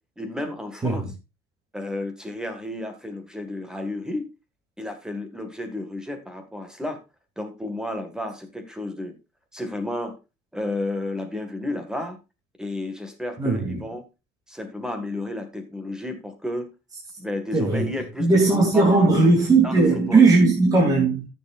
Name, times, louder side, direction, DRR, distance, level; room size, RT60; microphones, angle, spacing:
voice 1, 0.2-1.1 1.7-4.3 4.8-7.0 7.4-9.1 9.5-10.2 10.5-12.2 12.6-14.0 14.5-16.7 17.2-19.1 19.6-20.3, left 1 dB, 5° right, 1.8 m, -32 dB
voice 2, 13.4-13.8 17.5-17.9 18.2-21.3, right 3 dB, 20° right, 2.8 m, -18 dB
14.0 x 7.2 x 2.5 m
cardioid pair, 160°, 17 cm